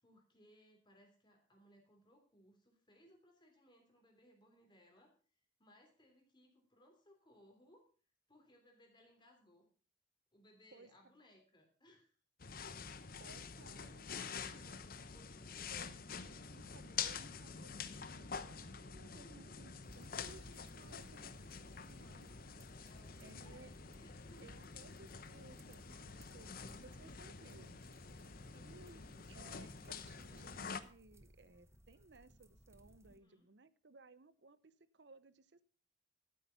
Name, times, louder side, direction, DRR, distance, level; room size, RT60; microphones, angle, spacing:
voice 1, 0.0-5.1 5.6-7.8 8.3-9.7 10.3-12.2 14.7-15.5 19.2-19.6 22.8-24.4 26.7-27.3 33.0-33.4, equal, 25° left, 3.1 m, -66 dB
sound 1, 12.4-30.8, left 6 dB, 50° left, 0.9 m, -47 dB
voice 2, 13.2-14.8 15.7-22.3 23.2-23.7 24.4-27.7 28.4-35.6, right 3 dB, 65° right, 0.8 m, -61 dB
sound 2, 19.8-33.2, right 1 dB, 15° right, 0.9 m, -65 dB
13.0 x 8.6 x 5.7 m
head